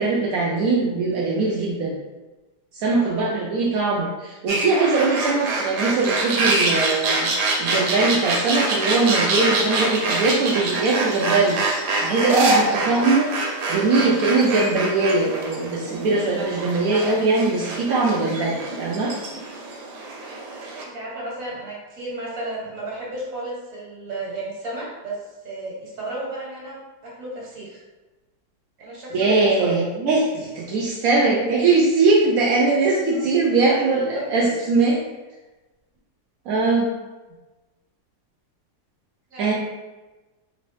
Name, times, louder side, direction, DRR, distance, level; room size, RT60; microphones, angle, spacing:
voice 1, 0.0-2.0 2.7-11.6 12.0-13.3 13.7-19.1 29.1-35.0 36.5-36.9 39.4-39.5, right 3 dB, 85° right, -3 dB, 0.7 m, -21 dB
voice 2, 2.9-3.4 5.3-5.4 20.9-25.2 25.4-26.8 27.2-27.8 28.8-29.8 33.1-33.2 33.7-33.8 34.1-34.2 39.3-39.5, right 2 dB, 50° right, -5 dB, 1.3 m, -33 dB
sound 1, 4.5-20.8, right 2 dB, 70° right, 1.2 m, -25 dB
3.5 x 2.6 x 3.2 m, 1.2 s
omnidirectional pair, 2.0 m